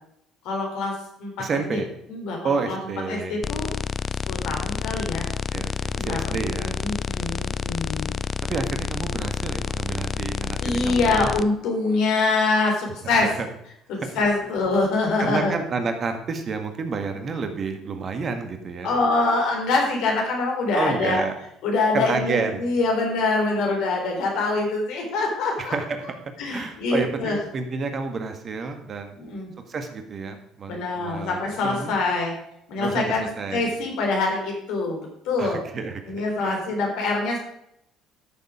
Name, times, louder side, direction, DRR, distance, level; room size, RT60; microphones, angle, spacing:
voice 1, 0.4-1.8 2.1-2.8 3.1-3.7 4.3-5.3 5.9-6.3 6.6-8.1 10.6-13.4 13.9-15.6 18.8-21.2 21.6-25.7 26.4-27.4 29.2-29.5 30.7-32.4 32.7-33.3 33.5-35.0 35.3-35.7 36.1-37.4, left 3 dB, 65° left, 1 dB, 3.8 m, -24 dB
voice 2, 1.4-1.9 2.4-3.4 5.5-6.8 8.0-8.1 8.5-11.3 13.2-13.5 14.0-14.1 15.2-18.9 20.7-21.3 21.9-22.7 25.6-26.0 26.5-29.2 29.7-32.0 32.8-33.7 35.4-36.0 36.4-36.6, right 4 dB, 45° right, 7 dB, 1.8 m, -30 dB
sound 1, 3.4-11.4, left 6 dB, 40° left, 0.5 m, -29 dB
13.0 x 7.0 x 5.1 m, 0.76 s
hypercardioid pair, 60°, 0 cm